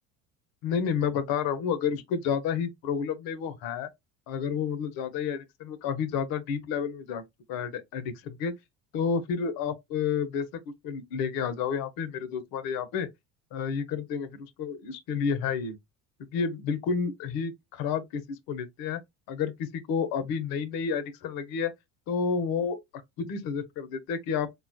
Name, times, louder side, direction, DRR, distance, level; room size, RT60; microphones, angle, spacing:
voice 1, 0.6-3.9 4.3-8.5 8.9-10.5 10.8-13.1 13.5-15.8 16.3-19.0 19.3-21.7 22.1-22.8 23.2-24.6, left 6 dB, 60° left, 0.8 m, -30 dB
3.8 x 2.3 x 2.5 m
hypercardioid pair, 70°, 39 cm